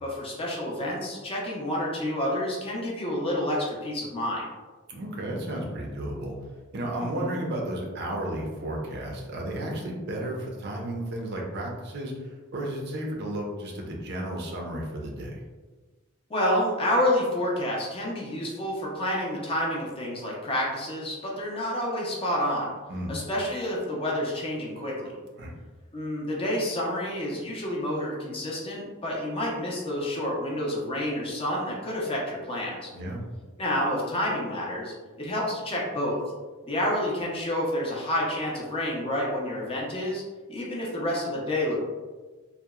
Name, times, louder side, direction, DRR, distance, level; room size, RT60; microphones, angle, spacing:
voice 1, 0.0-4.4 7.0-7.4 16.3-22.7 23.1-25.1 25.9-32.9 33.6-36.2 36.7-40.2 40.5-41.8, left 1 dB, 25° left, -3 dB, 0.5 m, -29 dB
voice 2, 4.9-6.3 6.7-15.4 22.9-23.1 25.4-25.5 32.9-33.2, right 1 dB, 55° right, -1 dB, 0.5 m, -33 dB
2.8 x 2.0 x 2.3 m, 1.3 s
head